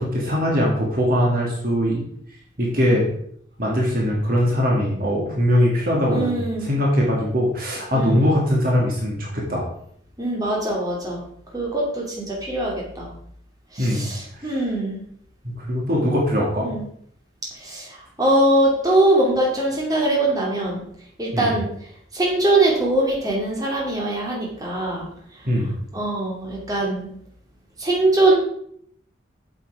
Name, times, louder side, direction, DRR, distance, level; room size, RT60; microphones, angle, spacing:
voice 1, 0.0-2.0 2.6-3.1 3.6-9.6 13.8-14.0 14.3-14.6 15.6-16.7 21.3-21.5 25.5-25.7, equal, 50° right, -2 dB, 2.1 m, -21 dB
voice 2, 6.1-6.7 7.9-8.2 10.2-11.2 11.5-13.1 13.7-15.0 16.6-16.8 17.6-20.8 21.2-21.7 22.1-25.1 25.9-27.1 27.8-28.3, right 1 dB, 20° right, -3 dB, 2.5 m, -22 dB
8.2 x 6.9 x 4.8 m, 0.67 s
head